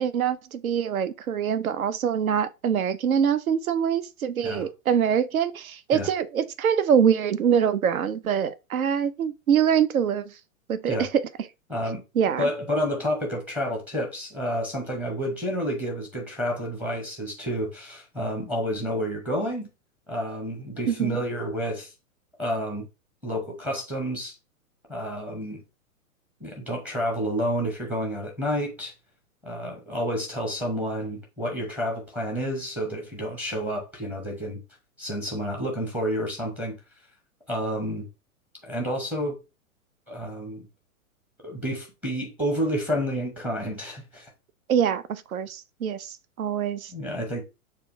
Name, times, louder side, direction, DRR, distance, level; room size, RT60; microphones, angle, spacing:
voice 1, 0.0-10.3 10.7-11.2 12.2-12.5 20.9-21.2 44.7-46.9, right 8 dB, 75° right, 0.5 m, -24 dB
voice 2, 11.7-12.0 12.4-19.7 20.1-21.9 22.4-22.9 23.2-24.3 24.9-25.6 26.4-28.9 29.4-34.6 35.0-36.8 37.5-38.1 38.6-39.4 40.1-40.7 41.4-44.3 46.9-47.4, equal, 5° right, 0.6 m, -29 dB
6.6 x 2.3 x 2.5 m
figure-of-eight pair, 110°, 43 cm